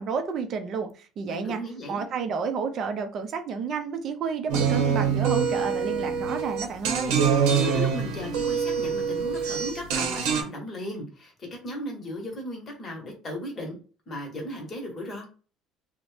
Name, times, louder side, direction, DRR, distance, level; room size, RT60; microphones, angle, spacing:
voice 1, 0.0-1.6 1.9-7.2, right 6 dB, 40° right, 0.5 m, -31 dB
voice 2, 1.3-2.0 7.6-13.8 14.1-15.3, left 1 dB, 25° left, 1.0 m, -36 dB
sound 1, 4.5-10.4, right 6 dB, 90° right, 0.7 m, -25 dB
2.6 x 2.1 x 3.2 m
cardioid pair, 160°, 0 cm